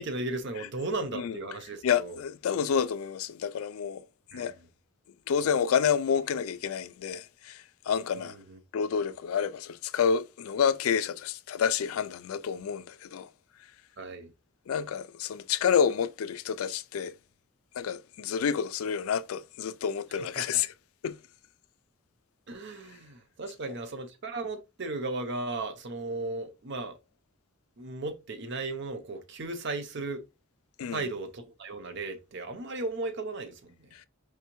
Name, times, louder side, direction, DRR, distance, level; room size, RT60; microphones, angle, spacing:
voice 1, 0.0-2.2 4.3-4.5 8.3-8.6 14.0-14.3 20.4-20.6 22.5-27.0 27.8-30.2 30.9-33.9, right 2 dB, 55° right, 0.7 m, -36 dB
voice 2, 1.8-4.0 4.3-4.5 5.3-8.3 8.7-13.3 14.7-17.1 17.8-20.7 21.0-21.2 23.6-23.7 30.8-31.1, left 7 dB, 80° left, 0.4 m, -29 dB
4.8 x 3.3 x 3.0 m
head